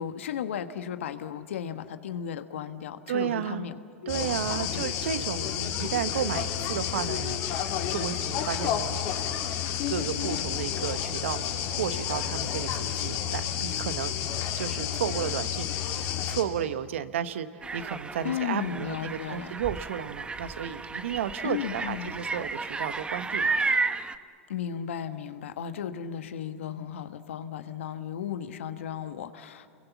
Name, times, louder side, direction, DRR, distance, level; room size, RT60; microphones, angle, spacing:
voice 1, 0.0-3.7 4.0-4.8 18.2-19.5 21.4-22.1 24.5-29.7, left 9 dB, 75° left, 10 dB, 1.4 m, -35 dB
voice 2, 3.1-3.7 4.1-7.4 7.8-9.0 9.9-14.1 14.6-23.5, right 9 dB, 75° right, 12 dB, 1.1 m, -33 dB
sound 1, 4.1-16.4, left 9 dB, 50° left, 3.0 m, -30 dB
sound 2, 17.6-24.2, right 4 dB, 15° right, 1.0 m, -32 dB
30.0 x 22.5 x 7.2 m, 2.3 s
hypercardioid pair, 105°, 7 cm